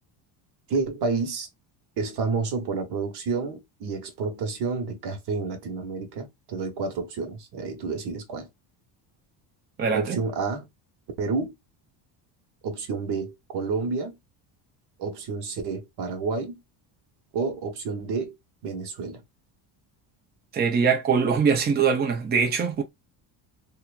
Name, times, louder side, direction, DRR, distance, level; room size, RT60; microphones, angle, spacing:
voice 1, 0.7-1.5 2.0-8.5 9.9-10.7 11.2-11.5 12.6-14.2 15.0-16.6 17.3-18.3 18.6-19.2, right 4 dB, 55° right, 1.1 m, -29 dB
voice 2, 9.8-10.2 20.5-22.8, right 6 dB, 20° right, 0.6 m, -22 dB
2.8 x 2.2 x 2.4 m
cardioid pair, 150°, 47 cm